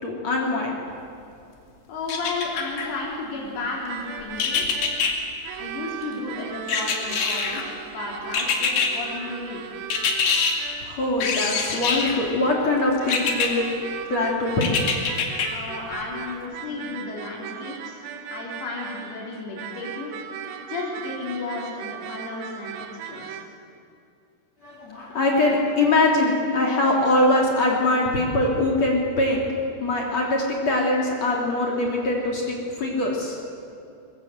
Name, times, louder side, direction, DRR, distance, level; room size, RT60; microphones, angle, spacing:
voice 1, 0.0-0.8 10.8-13.6 14.1-14.8 24.6-29.4 29.8-33.4, left 2 dB, 40° left, -2 dB, 3.4 m, -22 dB
voice 2, 1.9-4.7 5.5-9.7 15.5-18.0 18.3-20.4 20.7-22.7 23.0-23.4, left 3 dB, 90° left, -3 dB, 6.8 m, -33 dB
sound 1, 2.1-2.9 4.4-5.1 6.7-7.6 8.3-8.9 9.9-10.5 11.2-12.2 13.1-13.5 14.6-15.5 15.9-16.0, left 5 dB, 60° left, 3.8 m, -24 dB
sound 2, 3.9-23.5, right 9 dB, 85° right, 4.0 m, -38 dB
23.5 x 21.5 x 8.0 m, 2.5 s
omnidirectional pair, 5.9 m